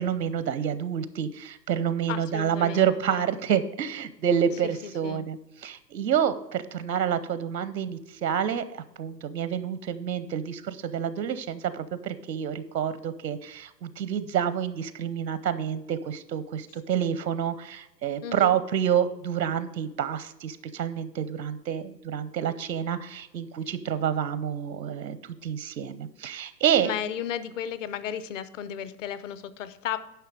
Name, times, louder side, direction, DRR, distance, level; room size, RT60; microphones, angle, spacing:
voice 1, 0.0-26.9, right 8 dB, 80° right, 14 dB, 0.8 m, -28 dB
voice 2, 2.1-3.2 4.8-5.2 18.2-18.6 26.8-30.0, left 9 dB, 50° left, 14 dB, 0.8 m, -34 dB
10.5 x 5.8 x 4.8 m, 0.91 s
hypercardioid pair, 125°, 50 cm